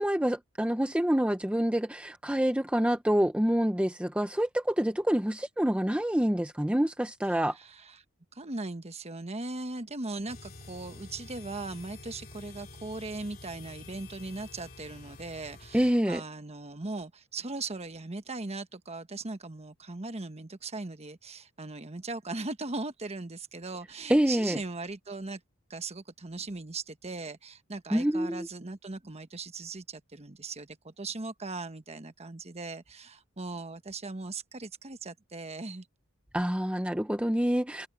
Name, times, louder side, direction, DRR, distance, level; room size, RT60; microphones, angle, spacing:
voice 1, 0.0-7.6 15.7-16.2 24.1-24.6 27.9-28.5 36.3-37.9, equal, 5° right, 0.8 m, -27 dB
voice 2, 7.3-8.0 8.3-25.4 25.7-35.9, right 3 dB, 30° right, 1.2 m, -39 dB
sound 1, 10.3-15.9, left 2 dB, 45° left, 3.1 m, -48 dB
head